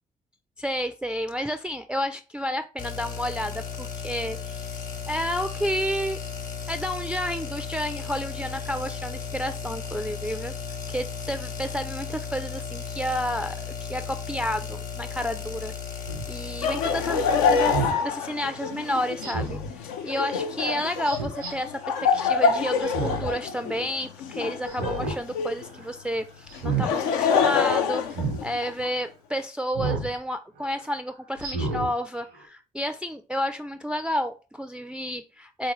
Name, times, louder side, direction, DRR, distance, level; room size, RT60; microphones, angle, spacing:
voice 1, 0.6-4.8 5.1-6.2 6.7-10.5 10.9-35.7, equal, 5° right, 8 dB, 0.3 m, -31 dB
sound 1, 2.8-17.8, left 6 dB, 50° left, 0.9 m, -35 dB
Speech synthesizer, 16.1-16.3 17.7-18.0 19.2-19.7 21.1-21.5 22.8-23.4 23.7-23.8 24.7-25.2 25.6-25.9 26.5-26.9 28.1-28.4 29.8-30.1 30.6-30.7 31.4-31.9 32.3-32.4, right 3 dB, 85° right, 0.8 m, -29 dB
Laughter, 16.6-25.7 26.5-28.9, left 6 dB, 80° left, 0.4 m, -26 dB
3.8 x 2.6 x 2.9 m, 0.34 s
hypercardioid pair, 40°, 19 cm